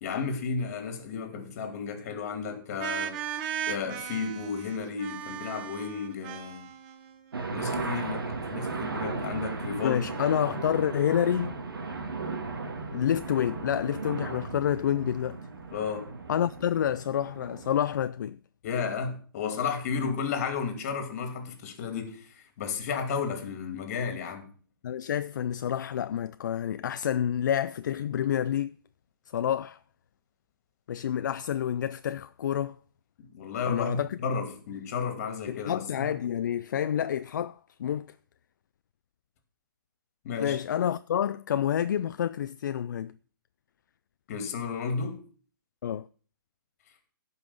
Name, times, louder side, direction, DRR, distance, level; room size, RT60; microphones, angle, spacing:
voice 1, 0.0-3.2 3.7-6.7 7.5-10.1 15.7-16.1 18.6-24.5 33.3-36.1 40.2-40.6 44.3-45.2, left 5 dB, 40° left, 2.5 m, -33 dB
sound 1, 2.8-7.5, right 9 dB, 30° right, 0.9 m, -37 dB
sound 2, 7.3-18.1, right 4 dB, 75° right, 2.3 m, -36 dB
voice 2, 9.8-11.6 12.9-15.4 16.3-18.4 20.0-20.1 24.8-28.7 29.3-29.8 30.9-32.8 33.7-34.4 35.5-38.1 40.4-43.1 45.8-46.1, left 9 dB, 55° left, 0.4 m, -28 dB
11.5 x 5.6 x 7.1 m
hypercardioid pair, 145°, 12 cm